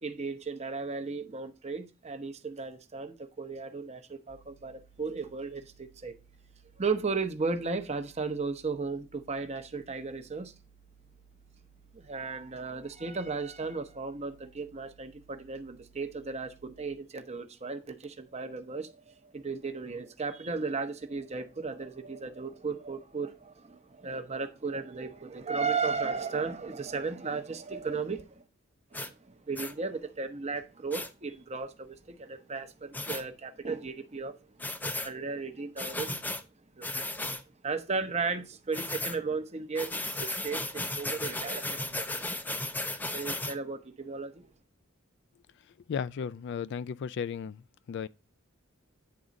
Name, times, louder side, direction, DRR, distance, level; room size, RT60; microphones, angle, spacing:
voice 1, 0.0-6.2 6.8-10.5 11.9-28.4 28.9-34.4 35.0-36.2 36.8-37.1 37.6-42.3 43.1-44.5, right 4 dB, 30° right, 0.8 m, -35 dB
sound 1, 4.3-16.9, right 6 dB, 80° left, 1.5 m, -61 dB
sound 2, 28.9-29.1 29.6-29.7 30.9-31.1 32.9-33.2 34.6-35.1 35.8-36.4 36.8-37.4 38.7-39.2 39.8-43.6, left 2 dB, 10° left, 0.6 m, -35 dB
voice 2, 45.9-47.6 47.9-48.1, left 6 dB, 60° left, 0.3 m, -34 dB
9.5 x 3.7 x 5.1 m
head